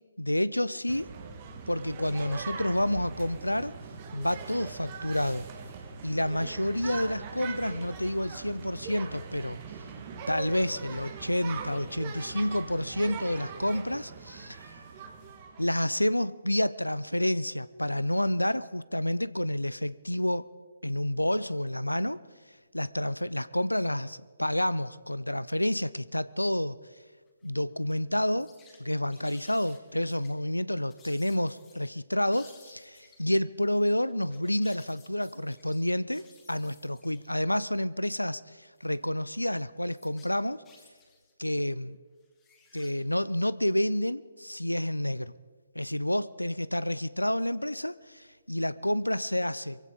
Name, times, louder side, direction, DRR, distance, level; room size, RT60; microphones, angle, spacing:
voice 1, 0.2-1.1 1.7-3.7 4.1-5.5 6.0-9.6 10.3-14.8 15.6-20.5 20.8-22.2 22.7-26.8 27.4-28.5 28.8-40.6 41.4-42.0 42.7-45.3 45.8-49.8, left 1 dB, 90° left, 17 dB, 0.4 m, -29 dB
sound 1, 0.9-15.8, right 5 dB, 30° right, 1.7 m, -41 dB
sound 2, 27.3-27.5 27.9-28.0 28.3-28.8 29.1-30.3 30.9-31.9 32.3-33.3 34.1-37.4 38.1-38.2 38.8-39.4 39.8-41.3 42.2-42.9, left 4 dB, 15° left, 2.3 m, -58 dB
23.5 x 15.5 x 3.9 m, 1.5 s
figure-of-eight pair, 135°, 0 cm